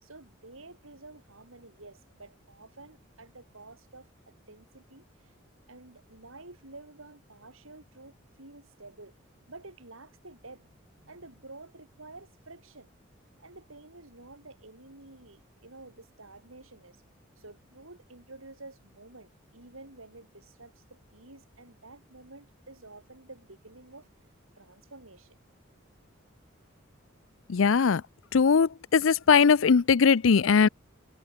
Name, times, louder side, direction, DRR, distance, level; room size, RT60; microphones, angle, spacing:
voice 1, 0.0-5.3 5.7-9.1 9.5-12.9 13.4-17.0 17.4-24.1 24.6-25.4, right 2 dB, 90° right, 5.3 m, -50 dB
voice 2, 27.5-28.0 28.3-30.7, left 5 dB, 80° left, 0.5 m, -20 dB
head